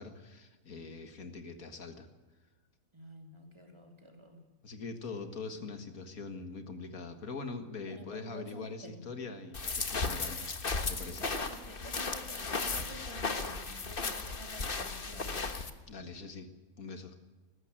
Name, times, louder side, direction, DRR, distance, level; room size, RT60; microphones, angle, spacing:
voice 1, 0.0-2.1 4.6-10.4 10.7-11.3 15.9-16.5 16.8-17.2, left 4 dB, 75° left, 8 dB, 2.2 m, -43 dB
voice 2, 2.9-4.4 5.2-5.5 7.9-9.0 11.1-15.4, right 1 dB, 20° right, 3 dB, 3.0 m, -50 dB
sound 1, 9.5-15.7, left 4 dB, 40° left, 1.5 m, -35 dB
19.5 x 15.0 x 9.0 m, 1.2 s
omnidirectional pair, 1.5 m